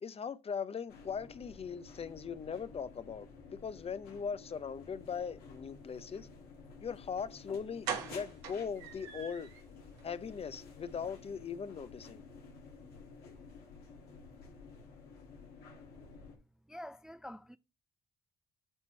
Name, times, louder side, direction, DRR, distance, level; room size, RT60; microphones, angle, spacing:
voice 1, 0.0-6.3 6.8-9.5 10.0-12.2, left 6 dB, 40° left, 0.6 m, -40 dB
sound 1, 0.9-16.4, left 4 dB, 75° left, 1.9 m, -53 dB
sound 2, 7.2-7.3 7.8-9.6 10.0-10.1 10.4-10.6 10.9-11.0, right 7 dB, 85° right, 1.1 m, -41 dB
voice 2, 16.7-17.6, equal, 5° right, 0.3 m, -46 dB
7.7 x 3.0 x 4.4 m
hypercardioid pair, 55°, 16 cm